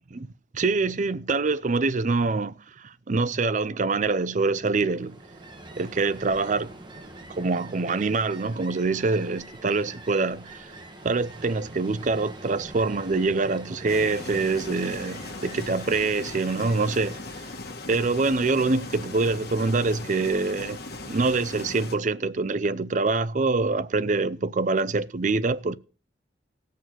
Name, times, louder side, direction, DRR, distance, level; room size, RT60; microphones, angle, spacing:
voice 1, 0.5-5.2 5.8-6.7 7.3-10.7 11.0-17.2 17.9-25.8, right 3 dB, 45° right, 0.5 m, -25 dB
Ocean, 4.8-17.6, right 2 dB, 25° right, 1.6 m, -44 dB
sound 1, 13.9-21.9, left 2 dB, 60° left, 1.7 m, -39 dB
17.0 x 6.6 x 6.3 m
head